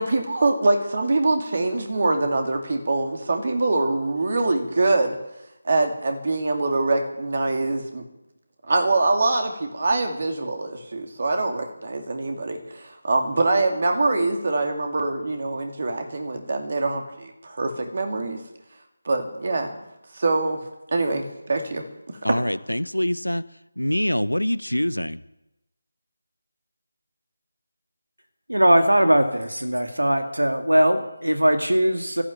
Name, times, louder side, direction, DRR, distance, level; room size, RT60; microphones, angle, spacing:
voice 1, 0.0-5.2 5.6-8.0 8.7-18.4 19.0-19.8 20.1-20.6 20.9-22.2, right 2 dB, 45° right, 4 dB, 2.5 m, -24 dB
voice 2, 22.2-23.4 23.8-25.2, left 1 dB, 90° left, 17 dB, 0.9 m, -24 dB
voice 3, 28.5-32.2, right 1 dB, 80° right, 6 dB, 1.9 m, -20 dB
13.0 x 11.0 x 8.7 m, 0.94 s
figure-of-eight pair, 160°, 0 cm